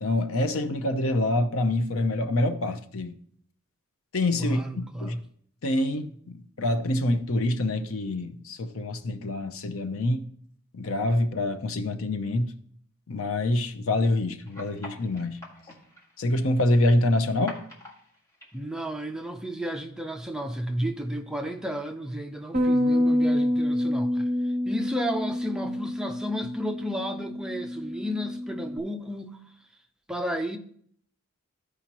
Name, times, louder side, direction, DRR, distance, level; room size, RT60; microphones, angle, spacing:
voice 1, 0.0-3.2 4.1-4.6 5.0-5.2 5.6-10.3 10.7-12.5 13.1-15.4 16.2-17.6, left 1 dB, 75° left, 0.7 m, -26 dB
voice 2, 4.4-5.2 18.5-29.4 30.1-30.6, equal, 5° right, 0.5 m, -32 dB
sound 1, 14.5-19.5, left 2 dB, 15° left, 1.8 m, -46 dB
Bass guitar, 22.5-28.8, left 1 dB, 40° right, 0.7 m, -27 dB
14.5 x 4.9 x 3.0 m
head